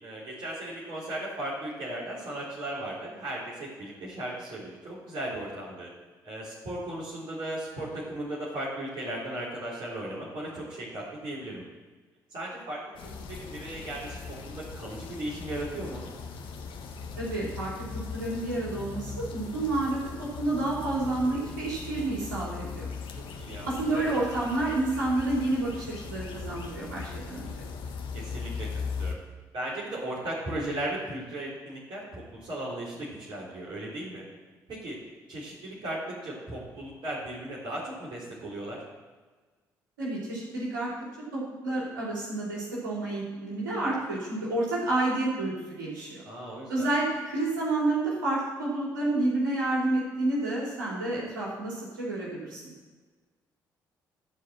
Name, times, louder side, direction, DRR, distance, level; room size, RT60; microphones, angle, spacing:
voice 1, 0.0-5.9 6.2-11.6 12.3-16.1 23.4-23.7 28.1-28.7 29.0-29.2 29.5-34.2 34.7-35.0 35.3-38.8 46.3-46.9, right 1 dB, 55° right, -7 dB, 3.7 m, -36 dB
sound 1, 13.0-29.2, left 5 dB, 55° left, 1.3 m, -39 dB
voice 2, 17.2-22.9 23.6-27.6 40.0-40.9 41.3-46.2 46.7-52.7, right 2 dB, 80° right, -5 dB, 3.1 m, -29 dB
14.0 x 4.9 x 7.4 m, 1.3 s
figure-of-eight pair, 45°, 10 cm